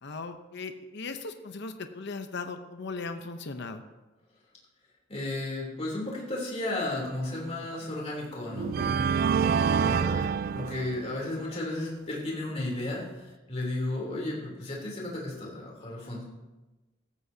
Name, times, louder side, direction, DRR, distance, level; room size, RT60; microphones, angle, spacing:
voice 1, 0.0-3.8, left 4 dB, 60° left, 7 dB, 0.8 m, -38 dB
voice 2, 5.1-9.5 9.7-13.0 13.5-16.2, left 2 dB, 30° left, -3 dB, 3.3 m, -34 dB
sound 1, 7.6-7.8 8.5-11.3, right 6 dB, 50° right, 0.3 m, -27 dB
16.5 x 14.0 x 2.8 m, 1.1 s
head